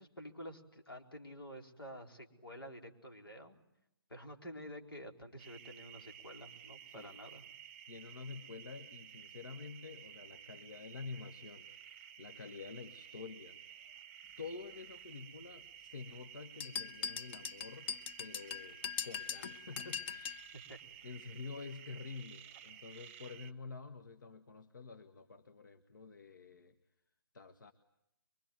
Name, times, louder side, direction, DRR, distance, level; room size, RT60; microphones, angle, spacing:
voice 1, 0.0-3.6 4.1-7.4 20.5-20.8, equal, 75° left, 3 dB, 4.3 m, -50 dB
sound 1, 5.4-23.5, right 9 dB, 30° right, 0.9 m, -54 dB
voice 2, 6.9-7.2 7.9-13.6 14.4-17.9 18.2-20.5 21.0-26.7 27.3-27.7, left 4 dB, 55° left, 8 dB, 1.5 m, -49 dB
sound 2, 16.6-20.5, left 7 dB, 30° left, 1.0 m, -41 dB
24.0 x 24.0 x 9.3 m, 0.84 s
figure-of-eight pair, 135°, 12 cm